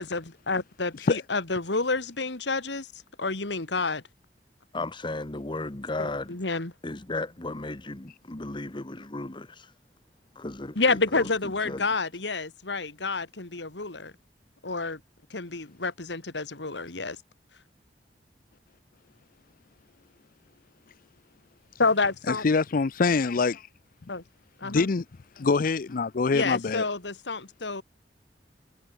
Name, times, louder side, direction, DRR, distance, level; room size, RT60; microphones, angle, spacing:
voice 1, 0.0-4.0 6.3-6.7 10.8-14.1 14.6-15.0 15.3-17.2 21.8-22.5 24.1-24.2 24.6-24.9 26.3-27.8, left 3 dB, 85° left, 2.2 m, -29 dB
voice 2, 4.7-6.4 6.8-9.7 10.3-11.3 11.6-11.8, left 2 dB, 30° left, 1.2 m, -35 dB
voice 3, 22.4-23.6 24.6-25.0 25.4-26.8, left 4 dB, 55° left, 0.5 m, -24 dB
head